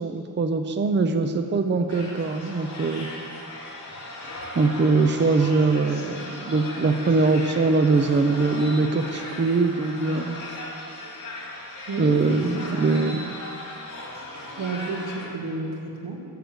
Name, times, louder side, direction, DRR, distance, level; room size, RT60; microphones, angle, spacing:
voice 1, 0.0-3.1 4.5-10.4 12.0-13.3, right 3 dB, 30° right, 7 dB, 0.6 m, -22 dB
sound 1, 1.9-15.3, left 1 dB, 50° left, 3.0 m, -38 dB
voice 2, 11.9-12.2 12.6-12.8 13.1-13.4 14.6-16.2, right 3 dB, 90° right, 1 dB, 1.9 m, -31 dB
13.5 x 6.8 x 7.9 m, 2.6 s
wide cardioid pair, 135°, 38 cm